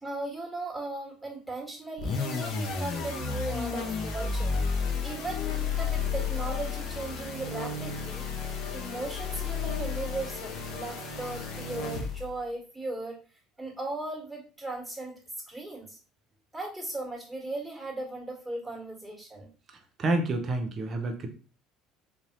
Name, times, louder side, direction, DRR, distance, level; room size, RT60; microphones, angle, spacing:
voice 1, 0.0-8.3 8.7-13.2 13.6-15.2 15.5-16.0 16.5-19.5, right 2 dB, 10° right, -1 dB, 1.6 m, -37 dB
sound 1, 2.0-12.4, left 5 dB, 50° left, 0.7 m, -32 dB
voice 2, 20.0-21.3, right 2 dB, 40° right, 5 dB, 0.7 m, -28 dB
3.9 x 2.6 x 2.9 m, 0.36 s
figure-of-eight pair, 60°, 0 cm